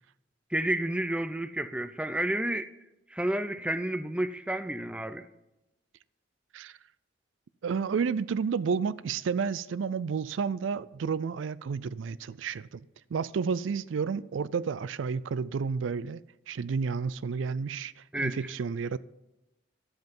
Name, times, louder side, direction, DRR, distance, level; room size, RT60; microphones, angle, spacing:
voice 1, 0.5-2.7 3.1-5.2 18.1-18.4, right 1 dB, 5° right, 0.4 m, -30 dB
voice 2, 7.6-12.9 13.1-16.2 16.5-19.0, right 5 dB, 80° right, 0.4 m, -31 dB
11.5 x 7.9 x 5.4 m
head